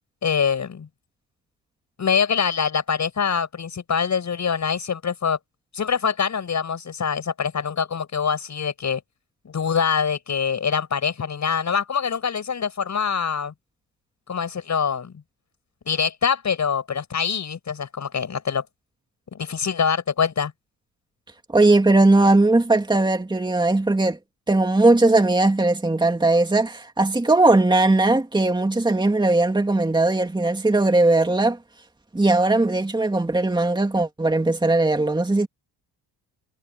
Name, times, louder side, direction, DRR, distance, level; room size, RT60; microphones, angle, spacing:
voice 1, 0.2-0.9 2.0-5.4 5.7-9.0 9.4-13.5 14.3-15.1 15.9-18.6 19.3-20.5, left 6 dB, 40° left, 5.9 m, -24 dB
voice 2, 21.5-24.2 24.5-31.6 32.1-35.5, right 2 dB, 10° right, 2.5 m, -19 dB
cardioid pair, 110°, 42 cm